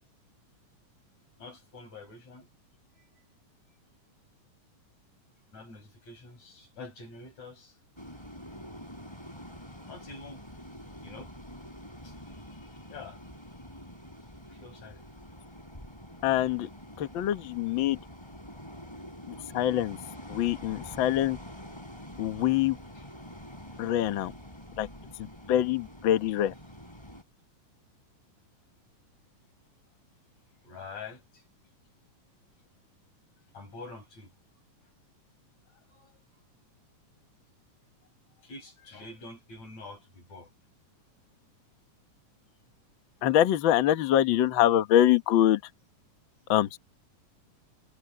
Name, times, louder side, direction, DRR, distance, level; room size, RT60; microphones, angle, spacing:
voice 1, 1.4-2.5 3.0-3.2 5.5-7.8 9.8-10.4 11.0-11.3 12.0-13.2 13.6-13.7 14.5-15.0 22.9-23.1 30.6-31.4 33.5-34.3 35.9-36.1 38.4-40.5, left 3 dB, 55° left, 8.2 m, -46 dB
sound 1, 8.0-27.2, equal, 5° left, 5.1 m, -46 dB
voice 2, 16.2-16.7 17.0-18.0 19.5-20.0 20.3-21.4 22.2-22.8 23.8-24.3 24.8-24.9 25.5-26.5 43.2-45.6 46.5-46.8, left 12 dB, 85° left, 1.0 m, -24 dB
omnidirectional pair, 3.9 m